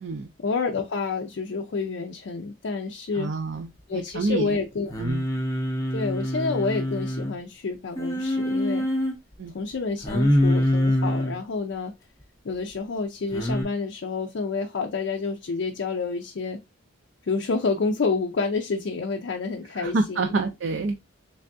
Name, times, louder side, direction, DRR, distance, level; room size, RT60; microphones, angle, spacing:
voice 1, 0.4-3.3 3.9-4.9 5.9-8.8 9.5-11.9 12.4-16.6 17.3-20.4, left 4 dB, 65° left, 0.4 m, -29 dB
voice 2, 3.2-4.5 5.0-5.2 9.4-9.5 19.8-21.0, right 3 dB, 60° right, 0.4 m, -27 dB
Singing, 4.9-7.3 8.0-9.1 10.0-11.4 13.3-13.6, left 1 dB, 15° left, 0.6 m, -24 dB
3.4 x 3.3 x 2.5 m
head